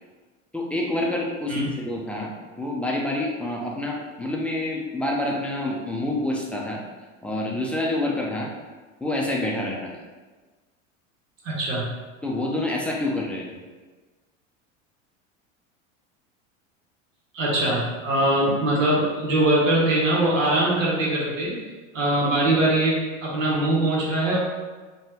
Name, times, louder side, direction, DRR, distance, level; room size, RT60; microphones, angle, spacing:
voice 1, 0.5-6.8 7.2-8.5 9.0-10.0 12.2-13.5, left 1 dB, 5° left, -3 dB, 0.3 m, -27 dB
voice 2, 11.4-11.9 17.3-21.6 21.9-24.4, right 1 dB, 85° right, -4 dB, 1.0 m, -22 dB
3.2 x 2.2 x 2.8 m, 1.3 s
hypercardioid pair, 85°, 38 cm